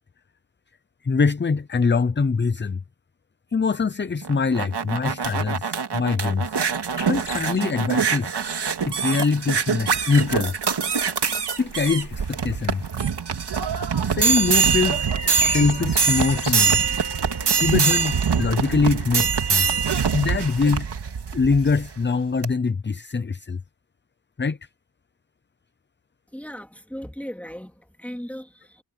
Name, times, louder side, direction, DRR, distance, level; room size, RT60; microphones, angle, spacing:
voice 1, 1.0-2.8 3.5-6.6 7.1-8.3 8.8-10.5 11.6-12.8 14.0-15.1 15.4-16.8 17.6-19.8 20.1-20.9 21.3-23.6 24.4-24.6, left 4 dB, 30° left, 0.6 m, -23 dB
sound 1, 4.2-21.9 22.4-22.5, right 6 dB, 85° right, 2.3 m, -24 dB
sound 2, 7.0-19.6, left 6 dB, 90° left, 3.9 m, -43 dB
voice 2, 26.3-28.8, equal, 5° left, 3.3 m, -37 dB
wide cardioid pair, 115°, 39 cm